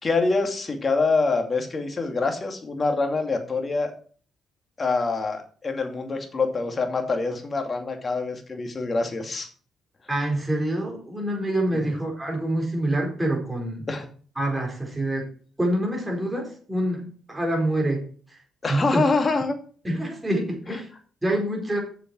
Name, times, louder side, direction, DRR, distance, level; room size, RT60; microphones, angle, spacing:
voice 1, 0.0-3.9 4.8-9.5 11.7-11.9 13.9-14.1 18.6-19.6 20.7-20.8, left 3 dB, 35° left, 5 dB, 2.4 m, -25 dB
voice 2, 10.1-13.9 14.4-15.3 15.6-18.0 18.7-19.0 19.8-20.9 21.2-21.8, right 1 dB, 10° right, 0 dB, 4.5 m, -26 dB
7.7 x 6.9 x 6.2 m, 0.44 s
cardioid pair, 90°, 0 cm